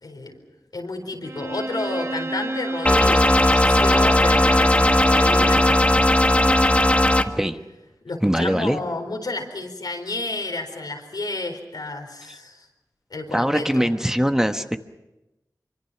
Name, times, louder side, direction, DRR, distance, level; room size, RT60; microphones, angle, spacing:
voice 1, 0.0-0.4 0.7-6.4 8.0-12.7 13.1-13.9, left 2 dB, 85° left, 3 dB, 4.3 m, -31 dB
Bowed string instrument, 1.2-7.0, right 1 dB, 45° right, 1.6 m, -31 dB
sound 1, 2.9-7.2, left 1 dB, 20° left, 1.5 m, -17 dB
voice 2, 8.2-8.8 13.3-14.8, equal, 5° right, 7 dB, 1.1 m, -21 dB
26.0 x 24.5 x 5.9 m, 1.0 s
wide cardioid pair, 65°, 7 cm